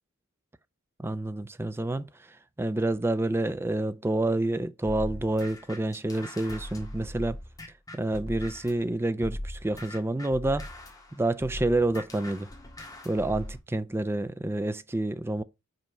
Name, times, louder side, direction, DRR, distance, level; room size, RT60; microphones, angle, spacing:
voice 1, 1.0-7.4 7.9-10.7 11.1-12.5 13.0-15.4, right 2 dB, 10° right, 0.4 m, -28 dB
sound 1, 4.9-8.8 9.2-13.6, left 1 dB, 15° left, 1.6 m, -40 dB
5.3 x 4.4 x 6.0 m
head